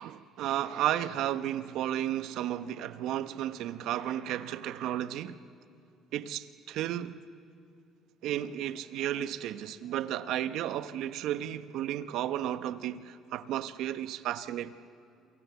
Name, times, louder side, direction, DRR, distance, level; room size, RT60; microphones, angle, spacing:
voice 1, 0.0-5.4 6.1-7.2 8.2-14.7, right 12 dB, 70° right, 0.9 m, -33 dB
27.5 x 23.0 x 8.2 m
cardioid pair, 135°, 0 cm